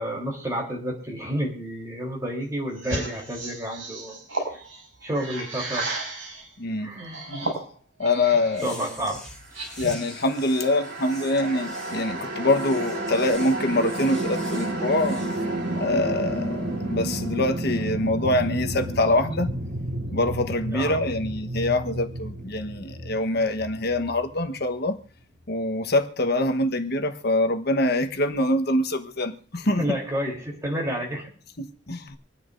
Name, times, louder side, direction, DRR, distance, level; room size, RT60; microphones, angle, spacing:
voice 1, 0.0-4.2 4.5-4.6 5.0-6.1 6.8-7.2 8.6-9.3 20.7-21.0 29.8-31.3, equal, 15° right, 3.5 m, -30 dB
sound 1, 2.8-6.5 7.0-8.7 9.0-10.1, right 2 dB, 80° right, 6.7 m, -34 dB
voice 2, 6.6-6.9 8.0-8.7 9.8-15.2 15.8-19.5 20.1-25.0 25.5-29.8 31.6-32.2, left 2 dB, 55° left, 1.1 m, -24 dB
sound 2, 8.5-15.4, left 1 dB, ahead, 7.0 m, -45 dB
sound 3, 9.7-24.9, right 1 dB, 65° right, 3.1 m, -31 dB
26.0 x 9.5 x 2.6 m
head